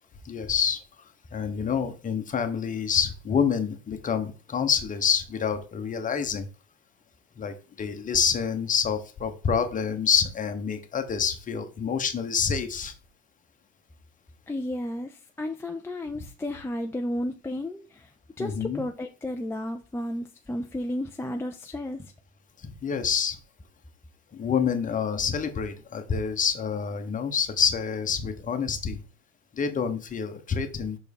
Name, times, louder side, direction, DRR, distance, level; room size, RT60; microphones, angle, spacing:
voice 1, 0.2-0.8 1.3-6.5 7.4-12.9 18.4-18.8 22.6-23.4 24.3-29.0 29.5-31.0, left 7 dB, 25° left, 7 dB, 1.1 m, -27 dB
voice 2, 14.5-18.1 18.4-22.1, left 1 dB, 10° left, 2 dB, 0.5 m, -33 dB
6.2 x 4.4 x 5.3 m, 0.35 s
supercardioid pair, 125°, 32 cm